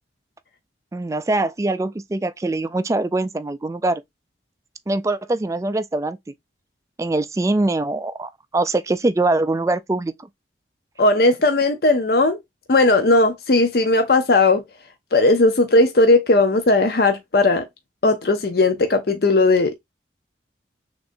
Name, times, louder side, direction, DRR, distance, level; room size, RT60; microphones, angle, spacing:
voice 1, 0.9-4.0 4.9-6.2 7.0-10.1, right 2 dB, 15° right, 0.3 m, -23 dB
voice 2, 11.0-12.4 12.7-14.6 15.1-17.6 18.0-19.8, left 2 dB, 60° left, 0.6 m, -17 dB
6.2 x 2.6 x 2.6 m
head